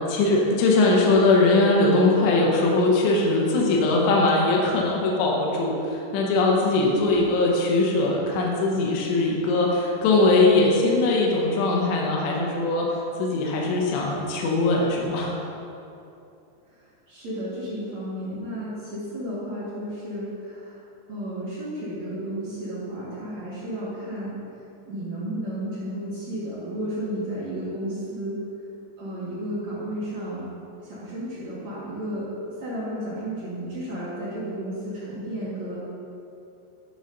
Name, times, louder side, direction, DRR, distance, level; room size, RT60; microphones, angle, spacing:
voice 1, 0.1-5.8 6.1-12.9 13.2-15.4, left 2 dB, 80° left, -2 dB, 3.1 m, -21 dB
voice 2, 6.9-7.3 16.7-20.8 21.1-24.4 24.9-28.4 29.0-30.5 30.8-32.3 32.6-35.8, right 1 dB, 60° right, -10 dB, 2.0 m, -33 dB
10.5 x 4.0 x 5.3 m, 2.7 s
omnidirectional pair, 5.2 m